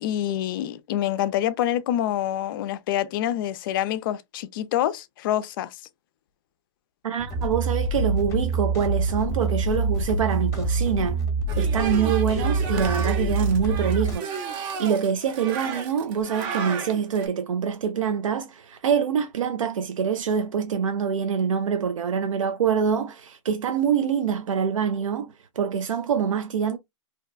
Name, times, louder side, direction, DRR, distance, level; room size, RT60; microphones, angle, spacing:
voice 1, 0.0-5.7, left 12 dB, 45° left, 0.4 m, -26 dB
voice 2, 7.0-11.2 11.6-14.3 14.8-26.8, right 7 dB, 90° right, 0.4 m, -25 dB
sound 1, 7.2-14.1, right 3 dB, 20° left, 0.8 m, -25 dB
sound 2, 11.5-17.3, right 5 dB, 25° right, 0.5 m, -33 dB
2.7 x 2.1 x 2.3 m
hypercardioid pair, 135°, 16 cm